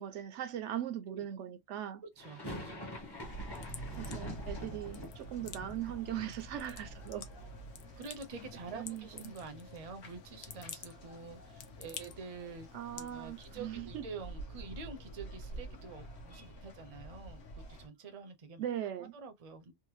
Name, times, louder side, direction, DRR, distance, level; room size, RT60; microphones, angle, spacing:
voice 1, 0.0-2.0 4.0-7.3 8.7-9.1 12.7-14.0 18.6-19.1, right 11 dB, 75° right, 0.9 m, -39 dB
voice 2, 2.0-2.9 6.0-6.3 8.0-12.7 12.9-18.7 19.0-19.7, right 4 dB, 40° right, 0.6 m, -47 dB
sound 1, 2.2-8.1 8.4-9.2 9.5-9.6 9.9-12.0, left 1 dB, 25° left, 0.8 m, -48 dB
sound 2, 2.9-13.6, left 8 dB, 80° left, 1.0 m, -52 dB
sound 3, 3.2-17.9, right 1 dB, 60° left, 1.3 m, -48 dB
3.5 x 2.1 x 3.1 m
omnidirectional pair, 1.3 m